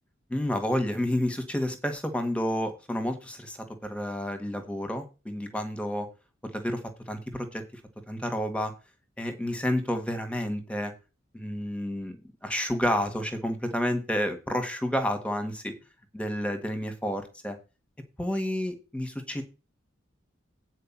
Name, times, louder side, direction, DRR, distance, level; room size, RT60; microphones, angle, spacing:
voice 1, 0.3-6.1 6.4-7.6 8.1-8.7 9.2-10.9 11.3-12.2 12.4-15.7 16.1-17.6 18.2-19.4, equal, 5° left, 7 dB, 1.7 m, -30 dB
9.2 x 4.8 x 7.2 m, 0.29 s
head